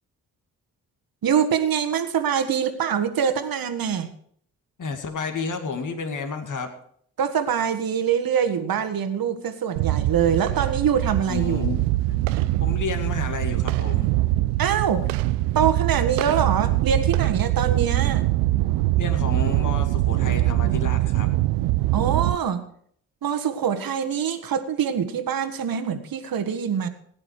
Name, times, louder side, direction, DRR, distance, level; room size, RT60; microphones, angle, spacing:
voice 1, 1.2-4.1 7.2-11.8 14.6-15.1 15.5-18.2 21.9-22.6 23.2-26.9, right 8 dB, 55° right, 9 dB, 1.6 m, -24 dB
voice 2, 4.8-6.7 11.2-11.8 12.6-14.1 19.0-21.3, left 4 dB, 45° left, 4 dB, 2.3 m, -31 dB
sound 1, 9.8-22.4, right 17 dB, 80° right, 0.6 m, -23 dB
17.0 x 9.7 x 4.9 m, 0.64 s
hypercardioid pair, 40°, 41 cm